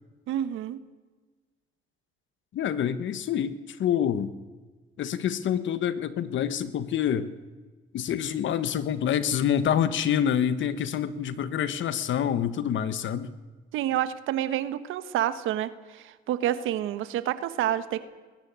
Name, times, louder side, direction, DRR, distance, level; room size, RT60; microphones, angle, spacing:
voice 1, 0.3-0.8 13.7-18.0, right 12 dB, 90° right, 13 dB, 1.3 m, -28 dB
voice 2, 2.5-4.3 5.0-7.3 7.9-13.3, left 9 dB, 70° left, 14 dB, 1.3 m, -27 dB
21.0 x 16.5 x 9.5 m, 1.3 s
cardioid pair, 90°, 20 cm